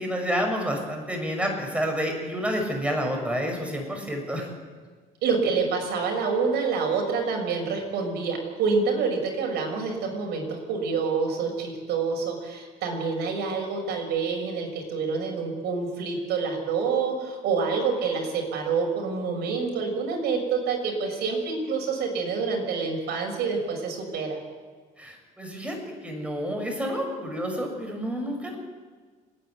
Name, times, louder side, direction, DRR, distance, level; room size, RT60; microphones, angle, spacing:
voice 1, 0.0-4.5 25.0-28.6, equal, 5° right, 2 dB, 6.4 m, -29 dB
voice 2, 5.2-24.4, right 5 dB, 75° right, 1 dB, 6.5 m, -27 dB
30.0 x 10.5 x 9.8 m, 1.5 s
cardioid pair, 110°, 17 cm